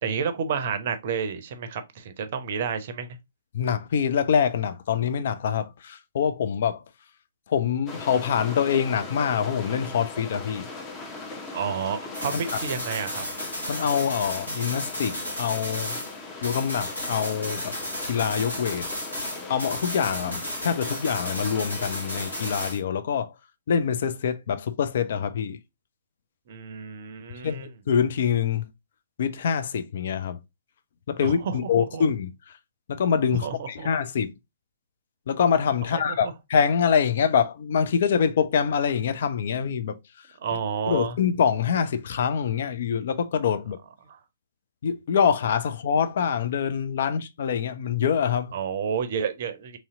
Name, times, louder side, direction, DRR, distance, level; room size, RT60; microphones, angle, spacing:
voice 1, 0.0-3.1 11.5-13.2 26.5-27.7 31.2-32.0 33.4-33.9 35.9-36.3 40.4-41.2 48.5-49.8, right 6 dB, 40° right, 0.6 m, -30 dB
voice 2, 3.5-6.8 7.5-10.7 13.7-16.0 16.4-17.7 18.0-18.9 19.5-23.3 23.7-25.6 27.4-28.7 29.2-30.4 31.1-32.3 32.9-34.3 35.3-40.0 40.9-43.8 44.8-48.5, left 7 dB, 50° left, 0.4 m, -25 dB
sound 1, 7.9-22.7, left 3 dB, 15° left, 0.7 m, -39 dB
sound 2, 12.1-16.2 16.4-22.8, equal, 80° left, 1.6 m, -34 dB
3.1 x 2.8 x 3.6 m
figure-of-eight pair, 125°, 0 cm